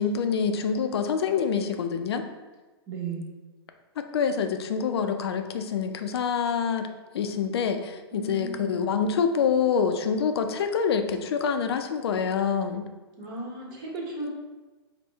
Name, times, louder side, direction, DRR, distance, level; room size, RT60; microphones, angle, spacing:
voice 1, 0.0-2.2 4.0-6.9 7.1-12.8, left 6 dB, 75° left, 7 dB, 0.4 m, -26 dB
voice 2, 2.9-3.3 8.1-8.9 13.2-14.3, right 3 dB, 45° right, -2 dB, 1.2 m, -35 dB
4.4 x 2.2 x 3.4 m, 1.2 s
hypercardioid pair, 125°, 14 cm